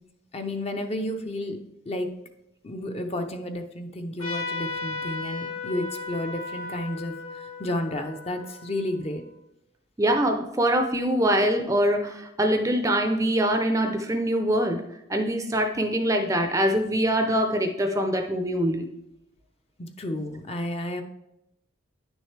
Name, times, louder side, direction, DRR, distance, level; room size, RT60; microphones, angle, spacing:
voice 1, 0.3-1.6 1.9-2.1 2.6-7.1 7.6-9.2 19.8-21.0, left 1 dB, 30° left, 6 dB, 0.6 m, -31 dB
Trumpet, 4.2-9.3, left 3 dB, 85° left, 2.1 m, -36 dB
voice 2, 10.0-14.8 15.1-18.9, right 1 dB, 15° right, 6 dB, 0.5 m, -24 dB
10.0 x 6.3 x 3.3 m, 0.84 s
head